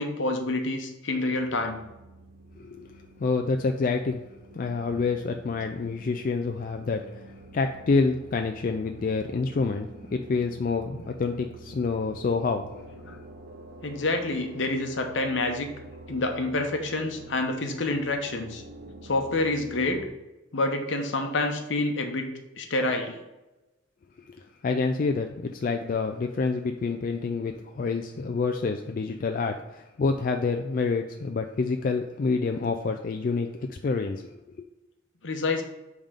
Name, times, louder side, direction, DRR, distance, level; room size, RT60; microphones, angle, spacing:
voice 1, 0.0-1.8 13.1-13.2 13.8-15.7 16.1-18.6 19.0-20.0 20.5-22.3 22.6-23.2 35.2-35.6, left 2 dB, 75° left, 4 dB, 0.9 m, -27 dB
sound 1, 1.3-20.1, right 2 dB, 50° right, 0.7 m, -47 dB
voice 2, 2.6-2.9 3.2-4.2 4.5-7.1 7.5-12.7 24.6-34.4, left 4 dB, 45° left, 5 dB, 0.3 m, -27 dB
5.4 x 3.6 x 5.1 m, 1.0 s
head